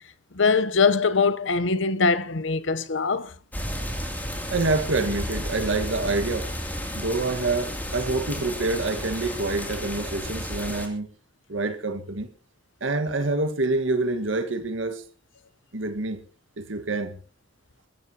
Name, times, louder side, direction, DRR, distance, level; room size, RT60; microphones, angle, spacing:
voice 1, 0.3-3.3, left 4 dB, 80° left, 0.9 m, -22 dB
sound 1, 3.5-10.9, equal, 10° left, 2.9 m, -32 dB
voice 2, 4.5-6.5 6.9-11.1 11.5-12.3 12.8-15.0 15.7-16.2 16.6-17.2, right 3 dB, 90° right, 1.7 m, -27 dB
24.5 x 14.5 x 2.9 m
head